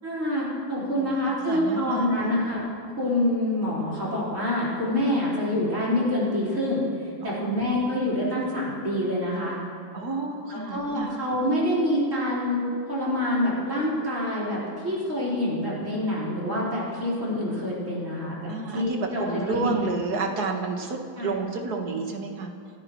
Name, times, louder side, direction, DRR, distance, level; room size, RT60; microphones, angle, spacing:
voice 1, 0.0-2.6 3.0-6.8 7.2-9.6 10.7-12.6 12.9-19.8 21.2-21.4, left 1 dB, 40° right, -7 dB, 5.1 m, -26 dB
voice 2, 1.5-2.3 7.2-7.9 9.9-11.2 18.5-22.5, right 4 dB, 55° right, 3 dB, 2.0 m, -30 dB
29.0 x 13.5 x 3.2 m, 2.5 s
omnidirectional pair, 2.1 m